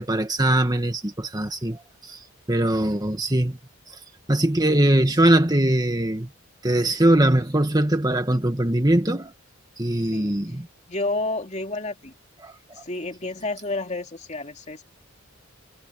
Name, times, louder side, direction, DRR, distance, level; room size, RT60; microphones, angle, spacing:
voice 1, 0.0-2.2 2.5-3.6 4.3-6.3 6.6-9.3 9.8-10.7 12.4-12.5, right 1 dB, 20° right, 1.7 m, -21 dB
voice 2, 10.9-12.1 12.8-14.8, left 2 dB, 30° left, 2.7 m, -30 dB
head